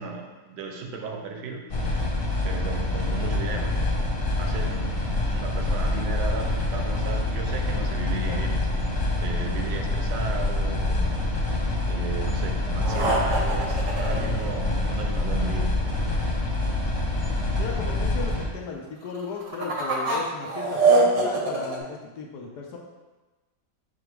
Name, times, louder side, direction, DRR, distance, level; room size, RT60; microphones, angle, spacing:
voice 1, 0.0-1.7 2.4-8.9 9.2-11.4 11.9-15.9, right 4 dB, 75° right, 3 dB, 1.2 m, -35 dB
sound 1, 1.7-18.5, left 2 dB, 55° left, 0.3 m, -26 dB
sound 2, 12.8-15.1 19.2-21.8, right 3 dB, 60° right, 0.9 m, -23 dB
voice 2, 17.6-22.8, left 5 dB, 75° left, 1 dB, 1.2 m, -35 dB
4.9 x 2.3 x 4.5 m, 1.2 s
omnidirectional pair, 1.9 m